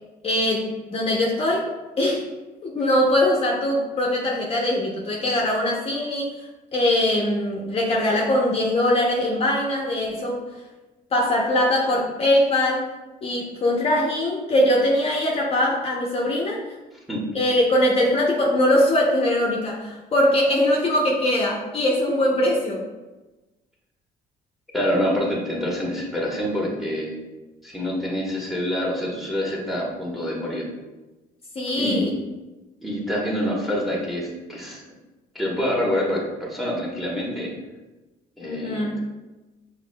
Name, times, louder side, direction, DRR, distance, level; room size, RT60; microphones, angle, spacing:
voice 1, 0.2-1.6 2.0-2.2 2.6-6.3 6.7-10.4 11.1-12.9 13.2-16.6 17.3-22.8 31.5-32.1 38.4-39.0, left 1 dB, 35° left, -2 dB, 0.7 m, -21 dB
voice 2, 24.7-27.2 27.6-30.7 31.7-32.1 32.8-34.8 35.3-37.5 38.4-39.0, equal, ahead, -3 dB, 1.1 m, -26 dB
5.9 x 3.1 x 2.2 m, 1.1 s
cardioid pair, 110°, 17 cm